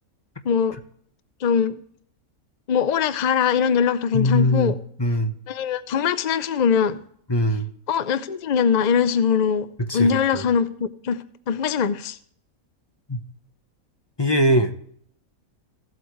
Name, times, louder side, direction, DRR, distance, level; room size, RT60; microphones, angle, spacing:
voice 1, 0.4-0.8 1.4-1.8 2.7-4.8 5.5-7.0 7.9-9.7 9.9-12.2, left 7 dB, 65° left, 0.4 m, -22 dB
voice 2, 4.1-4.7 5.0-5.3 7.3-7.7 9.8-10.4 13.1-13.2 14.2-14.7, equal, 20° left, 0.8 m, -21 dB
16.0 x 8.1 x 3.1 m
omnidirectional pair, 1.5 m